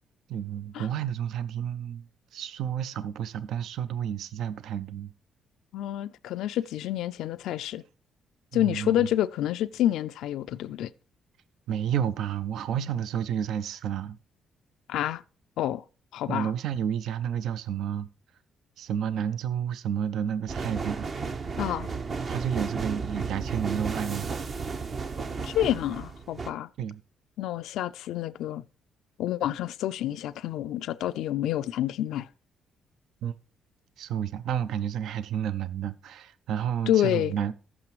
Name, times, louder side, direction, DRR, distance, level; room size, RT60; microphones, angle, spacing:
voice 1, 0.3-2.1 2.3-5.1 8.5-9.1 11.7-14.2 16.3-18.1 18.8-21.1 22.3-24.3 26.8-27.0 33.2-33.3 34.0-37.5, right 9 dB, 75° right, 0.5 m, -31 dB
voice 2, 5.7-7.8 8.5-10.9 14.9-15.2 15.6-15.8 16.1-16.5 21.6-21.9 25.4-26.7 27.4-28.6 29.2-32.3 36.9-37.3, left 12 dB, 80° left, 0.3 m, -28 dB
sound 1, 20.5-26.5, right 4 dB, 50° right, 1.0 m, -33 dB
15.0 x 6.0 x 3.1 m
supercardioid pair, 60°, 0 cm